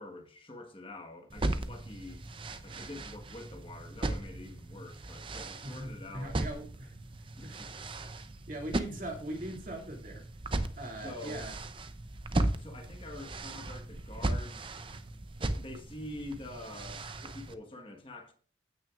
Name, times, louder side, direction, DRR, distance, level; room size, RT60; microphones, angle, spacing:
voice 1, 0.0-2.2 2.6-6.3 7.4-7.8 11.0-11.4 12.6-14.7 15.4-18.3, left 2 dB, 30° left, 1.4 m, -46 dB
sound 1, 1.3-17.5, right 2 dB, 25° right, 0.6 m, -37 dB
voice 2, 5.6-7.7 8.0-10.3 10.8-11.5, right 1 dB, 45° right, 2.5 m, -41 dB
15.5 x 6.2 x 2.5 m
head